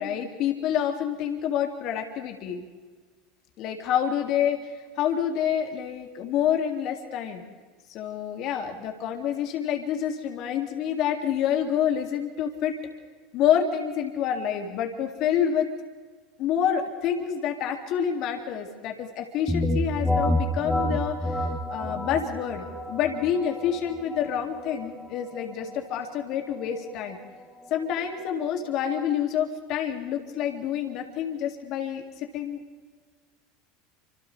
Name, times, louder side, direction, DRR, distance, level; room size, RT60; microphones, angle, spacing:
voice 1, 0.0-2.6 3.6-7.4 7.9-12.8 13.3-15.7 16.4-27.2 27.7-32.6, left 9 dB, 50° left, 4 dB, 2.5 m, -28 dB
sound 1, 19.5-29.1, left 1 dB, 5° left, 2.5 m, -30 dB
29.5 x 26.5 x 3.4 m, 1.5 s
hypercardioid pair, 80°, 0 cm